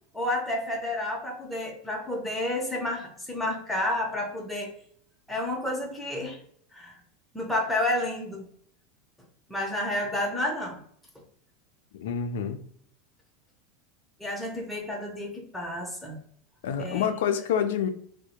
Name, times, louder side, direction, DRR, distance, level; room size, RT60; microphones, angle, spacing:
voice 1, 0.1-4.7 5.3-6.4 6.7-7.0 7.3-8.5 9.5-10.8 14.2-16.2 16.8-17.1, left 1 dB, 5° left, -1 dB, 0.7 m, -30 dB
voice 2, 11.9-12.6 16.6-17.9, left 8 dB, 70° left, 9 dB, 0.3 m, -27 dB
2.7 x 2.1 x 2.3 m, 0.63 s
hypercardioid pair, 90°, 0 cm